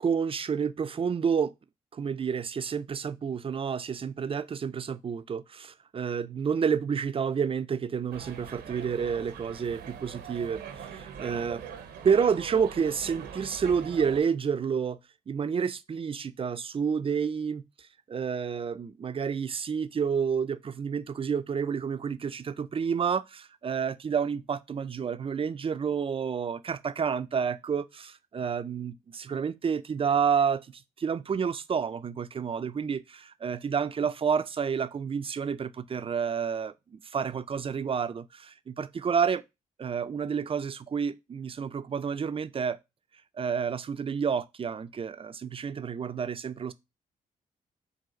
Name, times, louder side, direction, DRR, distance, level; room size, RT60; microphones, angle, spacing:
voice 1, 0.0-1.5 1.9-11.6 12.0-15.0 15.3-39.4 39.8-42.8 43.3-46.7, right 6 dB, 30° right, 0.4 m, -29 dB
sound 1, 8.1-14.2, right 7 dB, 70° right, 0.7 m, -42 dB
3.9 x 2.4 x 3.8 m
hypercardioid pair, 45°, 18 cm